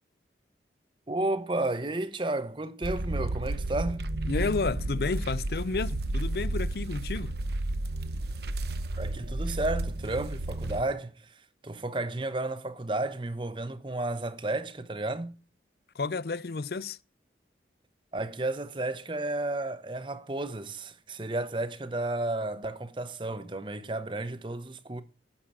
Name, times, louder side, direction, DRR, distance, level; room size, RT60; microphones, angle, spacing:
voice 1, 1.1-4.0 9.0-11.3 11.6-15.3 18.1-25.0, right 2 dB, 25° right, 0.8 m, -32 dB
sound 1, 2.8-10.8, right 1 dB, 65° right, 0.8 m, -32 dB
voice 2, 4.3-7.3 16.0-17.0, left 4 dB, 60° left, 0.5 m, -31 dB
9.9 x 7.4 x 7.3 m
head